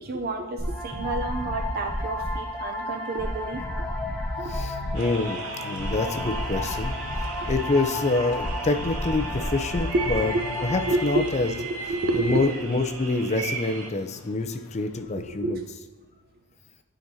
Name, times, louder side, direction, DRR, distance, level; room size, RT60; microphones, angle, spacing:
voice 1, 0.0-3.6 4.4-4.6 9.9-10.3 10.7-11.2 11.9-12.4 15.3-15.7, right 2 dB, 45° right, 5 dB, 0.5 m, -29 dB
sound 1, 0.6-11.0, left 1 dB, 5° left, 1.2 m, -31 dB
sound 2, 3.9-15.8, left 5 dB, 90° left, 0.4 m, -44 dB
voice 2, 4.5-6.9 7.4-10.3 10.6-11.5 12.2-15.6, left 3 dB, 30° left, 6 dB, 0.5 m, -26 dB
sound 3, 4.9-13.9, right 4 dB, 70° right, 0.9 m, -36 dB
10.5 x 5.1 x 2.8 m, 1.3 s
head